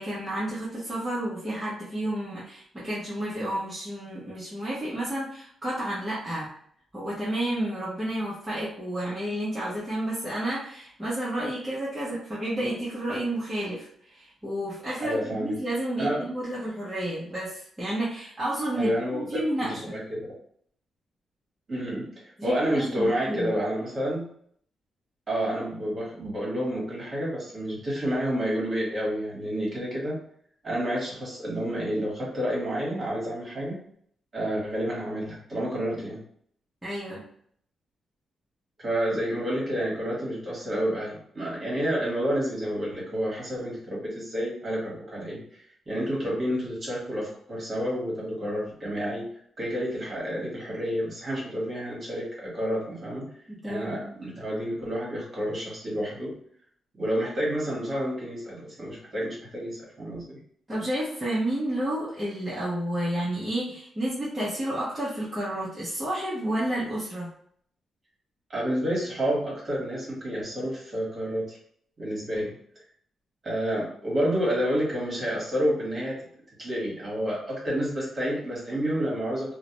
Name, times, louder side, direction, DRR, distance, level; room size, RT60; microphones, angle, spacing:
voice 1, 0.0-6.5 6.9-19.9 22.4-23.5 36.8-37.2 53.5-54.1 60.7-67.3, right 1 dB, 10° right, -9 dB, 0.7 m, -31 dB
voice 2, 15.0-15.6 16.0-16.2 18.7-19.2 19.6-20.3 21.7-22.1 22.4-24.2 25.3-30.2 30.6-33.8 34.3-36.2 38.8-49.2 49.6-53.2 53.6-56.3 56.9-60.4 68.5-71.6 72.0-72.5 73.4-76.2 76.6-79.5, equal, 35° right, -5 dB, 1.2 m, -29 dB
2.3 x 2.0 x 2.9 m, 0.62 s
wide cardioid pair, 145°, 0 cm